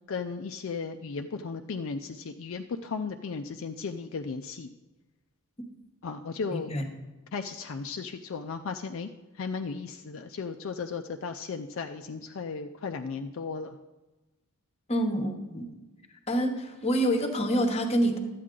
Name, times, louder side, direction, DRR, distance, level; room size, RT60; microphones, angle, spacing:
voice 1, 0.1-4.7 6.0-6.7 7.3-9.1 9.3-13.8, left 5 dB, 65° left, 6 dB, 0.4 m, -35 dB
voice 2, 6.5-6.8 14.9-15.7 16.3-18.2, equal, 30° left, 6 dB, 1.0 m, -27 dB
12.0 x 8.5 x 3.8 m, 1.1 s
head